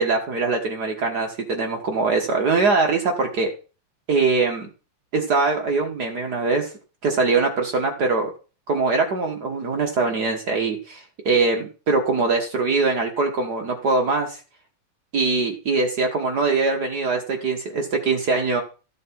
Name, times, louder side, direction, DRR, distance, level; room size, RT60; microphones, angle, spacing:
voice 1, 0.0-3.5 4.1-4.7 5.1-6.7 7.0-8.3 8.7-14.4 15.1-18.6, right 4 dB, 85° right, 2 dB, 0.8 m, -22 dB
13.5 x 7.5 x 4.5 m, 0.35 s
omnidirectional pair, 4.0 m